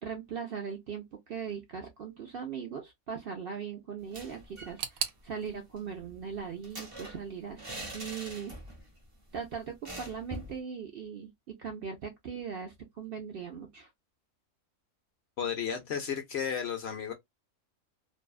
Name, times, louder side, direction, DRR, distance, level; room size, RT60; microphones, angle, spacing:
voice 1, 0.0-8.5 9.3-13.9, right 6 dB, 60° right, 0.6 m, -39 dB
sound 1, 4.0-4.8 5.1-5.2 5.5-8.9 9.2-9.3 9.8-10.6, right 1 dB, 30° right, 0.7 m, -44 dB
sound 2, 4.8-7.7 7.9-8.7 9.0-9.1 10.0-10.1, right 9 dB, 85° right, 1.0 m, -41 dB
voice 2, 15.4-17.1, left 7 dB, 60° left, 0.7 m, -33 dB
2.6 x 2.2 x 2.3 m
omnidirectional pair, 1.5 m